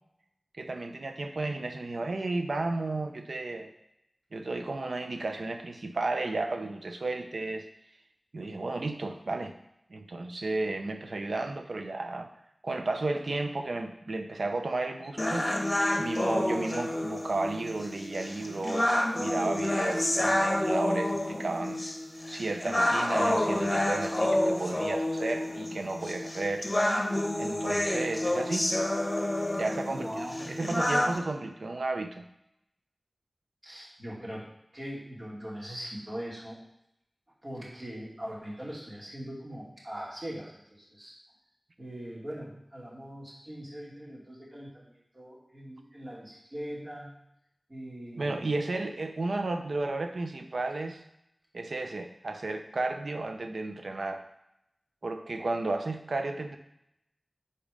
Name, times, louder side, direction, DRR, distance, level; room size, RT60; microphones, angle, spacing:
voice 1, 0.6-3.7 4.3-7.7 8.3-9.5 9.9-12.3 12.6-15.5 16.0-21.8 22.3-26.7 27.4-28.7 29.5-32.3 48.2-51.0 51.5-54.2 55.0-56.6, right 2 dB, 85° right, 5 dB, 0.6 m, -33 dB
sound 1, 15.2-31.2, left 1 dB, 30° left, 1.1 m, -29 dB
voice 2, 29.9-30.6 33.6-34.4 34.7-36.6 37.4-41.1 41.8-47.1 47.7-48.4, equal, 45° right, -5 dB, 2.3 m, -41 dB
5.1 x 4.3 x 5.0 m, 0.80 s
wide cardioid pair, 65°, 0 cm